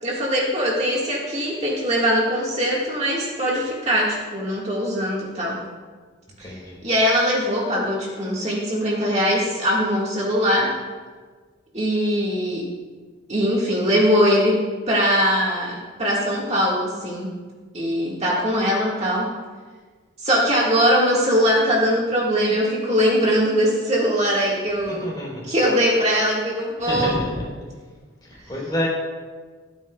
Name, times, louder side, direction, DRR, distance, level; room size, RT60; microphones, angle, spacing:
voice 1, 0.0-5.6 6.4-6.5 6.8-10.7 11.7-12.6 13.3-14.6 14.9-17.3 17.7-19.3 20.2-25.1 25.4-27.1, equal, 35° right, -4 dB, 1.8 m, -21 dB
voice 2, 6.4-6.8 24.9-25.5 26.8-27.5 28.3-28.9, left 1 dB, 20° left, -4 dB, 3.6 m, -28 dB
24.0 x 8.8 x 2.3 m, 1.5 s
head